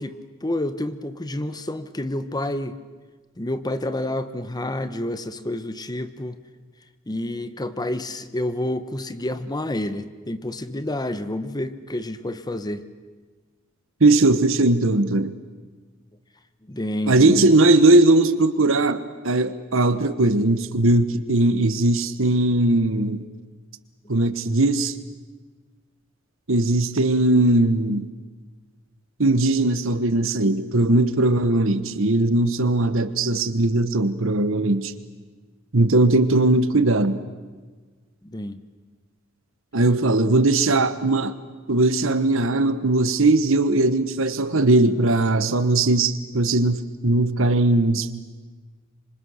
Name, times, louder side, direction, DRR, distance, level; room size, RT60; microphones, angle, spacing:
voice 1, 0.0-2.8 3.4-6.4 7.1-12.8 16.6-17.5 24.0-24.1 38.2-38.6, left 1 dB, 20° left, 12 dB, 1.0 m, -29 dB
voice 2, 14.0-15.3 17.1-19.0 19.2-23.2 24.1-24.9 26.5-28.0 29.2-34.9 35.7-37.2 39.7-41.3 41.7-48.1, right 2 dB, 70° right, 12 dB, 1.3 m, -19 dB
26.0 x 25.5 x 6.5 m, 1.4 s
head